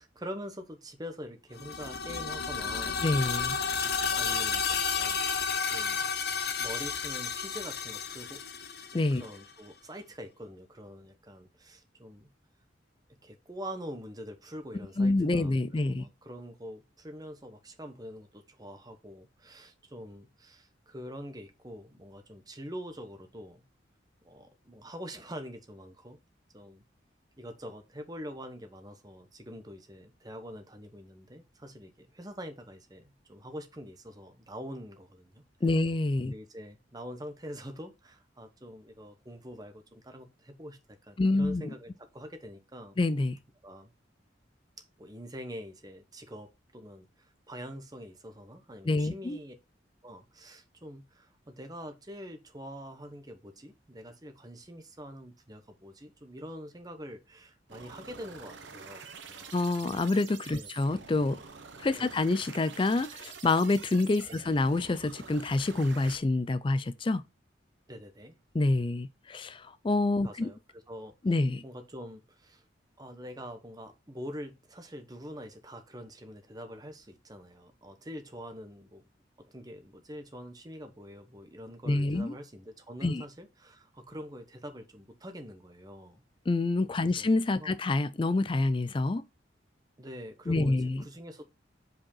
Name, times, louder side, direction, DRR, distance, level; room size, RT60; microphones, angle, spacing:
voice 1, 0.0-3.1 4.1-6.1 6.6-8.4 9.1-12.3 13.2-15.6 16.0-23.6 24.2-26.2 26.5-26.9 27.4-35.4 36.2-43.0 43.6-43.9 45.0-49.5 50.0-59.5 60.5-60.7 61.9-62.1 64.3-64.4 67.9-68.3 70.2-72.6 73.0-79.0 79.4-86.2 87.0-87.3 87.6-87.8 90.0-91.4, equal, 20° right, 1.1 m, -45 dB
sound 1, 1.5-9.4, left 6 dB, 55° left, 0.9 m, -32 dB
voice 2, 3.0-3.6 8.9-9.2 15.0-16.0 35.6-36.3 41.2-41.6 43.0-43.4 48.9-49.4 59.5-61.4 61.8-67.2 68.5-69.6 69.8-70.5 71.3-71.6 81.9-82.3 83.0-83.2 86.5-89.2 90.5-91.0, left 2 dB, 25° left, 0.4 m, -27 dB
sound 2, 57.7-66.2, right 5 dB, 80° right, 1.0 m, -47 dB
5.2 x 4.6 x 5.6 m
head